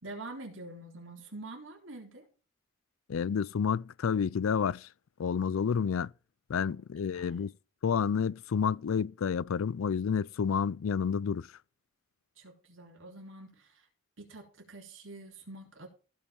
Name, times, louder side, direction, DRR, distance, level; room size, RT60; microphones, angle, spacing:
voice 1, 0.0-2.3 6.7-6.8 7.1-7.4 12.4-13.9 14.2-15.9, right 2 dB, 70° right, 3.6 m, -46 dB
voice 2, 3.1-4.9 5.2-6.1 6.5-7.5 7.8-11.5, left 6 dB, 80° left, 0.4 m, -29 dB
16.0 x 5.5 x 4.4 m
head